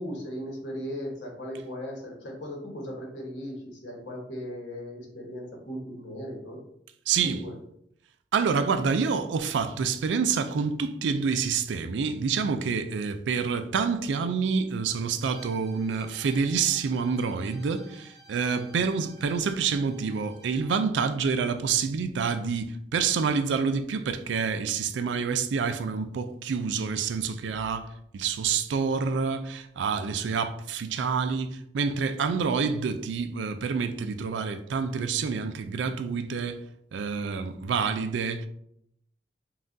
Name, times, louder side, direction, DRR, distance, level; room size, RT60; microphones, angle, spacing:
voice 1, 0.0-6.6 7.1-7.5, equal, 85° left, 1.2 m, -37 dB
voice 2, 7.1-7.4 8.3-36.6 36.9-38.5, right 5 dB, 80° right, 0.4 m, -27 dB
Bowed string instrument, 15.3-20.8, right 2 dB, 20° right, 1.3 m, -54 dB
5.5 x 2.4 x 2.6 m
head